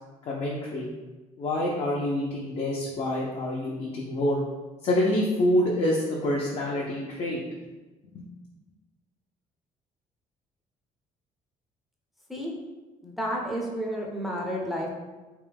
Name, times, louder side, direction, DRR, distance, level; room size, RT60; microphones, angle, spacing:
voice 1, 0.3-0.9 1.4-4.4 4.8-7.4 8.1-8.2, left 1 dB, 50° left, -4 dB, 0.7 m, -26 dB
voice 2, 13.0-14.9, equal, ahead, -2 dB, 0.6 m, -31 dB
3.4 x 3.0 x 3.4 m, 1.2 s
cardioid pair, 125°, 14 cm